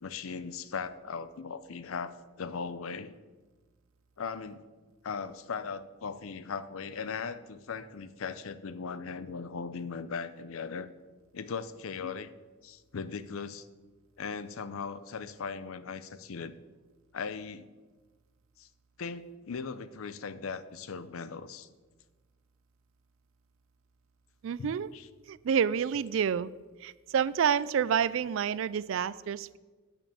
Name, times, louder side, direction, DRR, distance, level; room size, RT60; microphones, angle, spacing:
voice 1, 0.0-3.1 4.2-4.6 5.0-10.9 11.3-12.3 12.6-13.7 14.2-16.6 17.1-17.7 18.6-18.7 19.0-21.7 24.6-25.1, left 5 dB, 75° left, 13 dB, 0.6 m, -38 dB
voice 2, 24.4-24.9 25.3-26.5 26.8-29.6, right 7 dB, 65° right, 19 dB, 0.3 m, -28 dB
9.2 x 5.9 x 6.9 m, 1.3 s
head